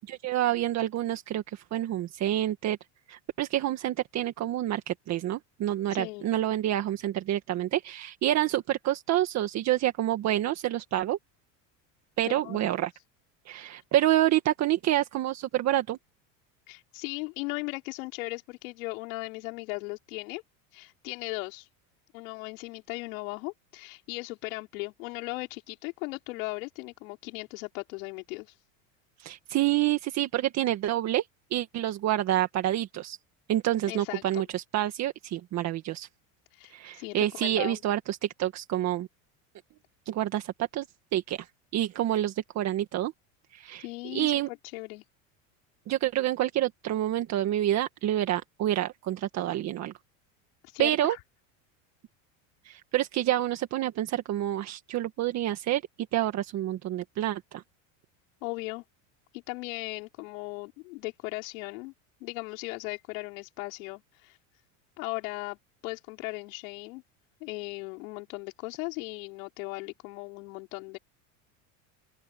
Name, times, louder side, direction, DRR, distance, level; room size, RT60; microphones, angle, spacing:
voice 1, 0.1-2.8 3.1-11.2 12.2-12.9 13.5-16.0 29.2-31.3 31.5-33.2 33.5-36.1 36.7-39.1 40.1-40.9 41.1-41.5 41.7-43.1 43.5-43.9 44.1-44.5 45.9-49.9 50.8-51.2 52.6-55.8 56.1-57.6, right 13 dB, 40° right, 1.8 m, -28 dB
voice 2, 5.9-6.3 12.3-12.7 16.7-20.4 20.7-21.7 22.1-28.6 33.9-34.5 36.5-37.8 43.8-45.0 50.6-51.2 58.4-58.8 59.3-61.9 62.2-64.4 65.0-65.6 65.8-67.0 67.4-71.0, left 25 dB, 80° left, 4.3 m, -37 dB
open air
supercardioid pair, 135°, 40 cm